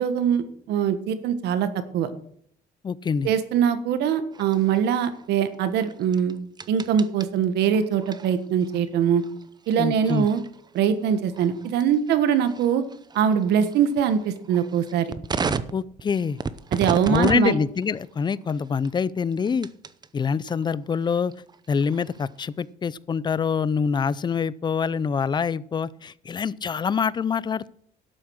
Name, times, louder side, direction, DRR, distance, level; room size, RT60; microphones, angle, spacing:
voice 1, 0.0-1.7 1.9-2.1 3.2-6.4 6.7-9.2 9.7-10.4 10.7-12.8 13.1-15.1 16.7-17.6, right 8 dB, 80° right, 11 dB, 1.5 m, -22 dB
voice 2, 2.8-3.3 9.8-10.3 15.7-16.4 17.1-19.7 20.1-21.3 21.7-27.7, left 6 dB, 25° left, 20 dB, 0.5 m, -25 dB
sound 1, 4.3-20.1 20.5-22.6, right 5 dB, 25° right, 0.7 m, -36 dB
12.5 x 8.1 x 6.4 m, 0.64 s
cardioid pair, 110°, 17 cm